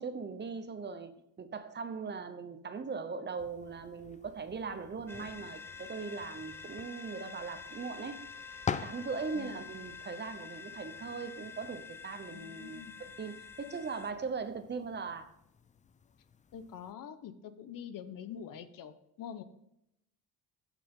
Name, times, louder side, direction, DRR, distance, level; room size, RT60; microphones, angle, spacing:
voice 1, 0.0-8.2 8.8-12.8 13.2-15.3, right 5 dB, 30° right, 9 dB, 1.0 m, -40 dB
sound 1, 3.4-16.9, left 6 dB, 25° left, 0.4 m, -47 dB
sound 2, 5.1-14.1, left 6 dB, 5° left, 0.8 m, -48 dB
voice 2, 9.3-9.6 12.3-13.0 16.5-19.4, left 8 dB, 70° left, 11 dB, 1.0 m, -45 dB
14.5 x 6.1 x 3.8 m, 0.80 s
cardioid pair, 135°, 34 cm